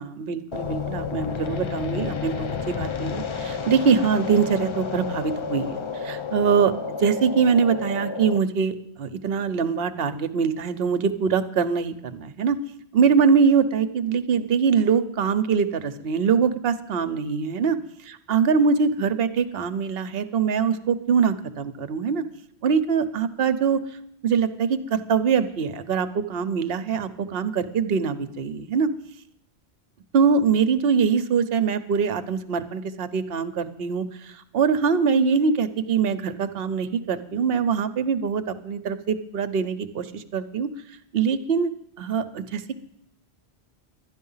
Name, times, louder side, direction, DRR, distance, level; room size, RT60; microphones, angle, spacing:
voice 1, 0.0-6.7 7.0-12.6 12.9-17.8 18.1-22.2 22.6-23.8 24.2-28.9 30.1-40.7 41.1-41.7 42.0-42.8, right 6 dB, 60° right, 11 dB, 1.0 m, -23 dB
sound 1, 0.5-8.4, left 6 dB, 45° left, 0.4 m, -31 dB
12.0 x 10.5 x 5.6 m, 0.73 s
omnidirectional pair, 1.2 m